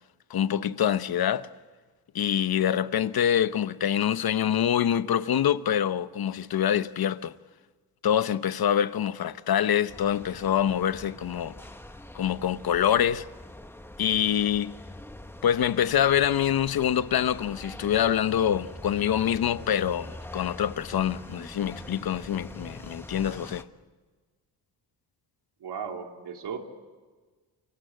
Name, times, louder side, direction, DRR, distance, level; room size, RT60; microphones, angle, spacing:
voice 1, 0.3-1.5 2.1-7.3 8.0-11.5 12.1-13.2 14.0-14.7 15.4-23.7, left 9 dB, 60° left, 0.8 m, -25 dB
sound 1, 9.9-23.6, left 1 dB, 5° left, 1.1 m, -44 dB
voice 2, 25.6-26.6, right 6 dB, 75° right, 3.3 m, -36 dB
28.5 x 24.0 x 7.8 m
cardioid pair, 115°, 41 cm